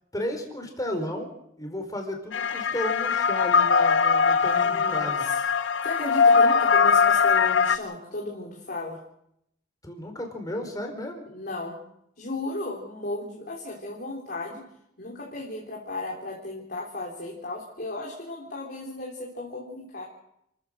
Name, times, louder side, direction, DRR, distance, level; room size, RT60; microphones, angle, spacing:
voice 1, 0.1-5.2 9.8-11.2, left 1 dB, 20° left, 4 dB, 4.4 m, -33 dB
sound 1, 2.3-7.8, left 5 dB, 85° left, 1.0 m, -21 dB
voice 2, 4.6-5.4 5.8-9.0 11.3-11.8 12.2-14.6 15.0-20.0, left 2 dB, 55° left, -2 dB, 3.6 m, -35 dB
30.0 x 14.0 x 6.5 m, 0.76 s
head